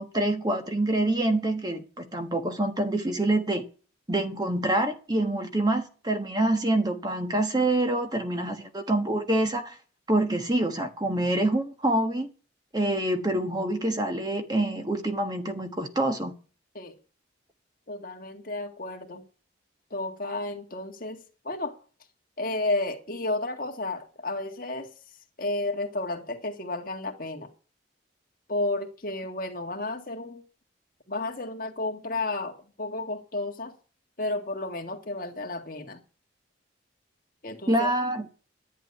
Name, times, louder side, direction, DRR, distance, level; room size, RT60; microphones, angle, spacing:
voice 1, 0.0-3.6 4.1-9.7 10.1-12.3 12.7-16.3 37.7-38.2, right 1 dB, 20° right, 1.3 m, -26 dB
voice 2, 17.9-19.2 19.9-21.2 21.4-21.8 22.4-24.9 25.4-27.5 28.5-30.4 31.1-33.7 34.2-36.0 37.4-37.9, left 2 dB, 45° left, 1.8 m, -32 dB
11.0 x 7.4 x 9.8 m
head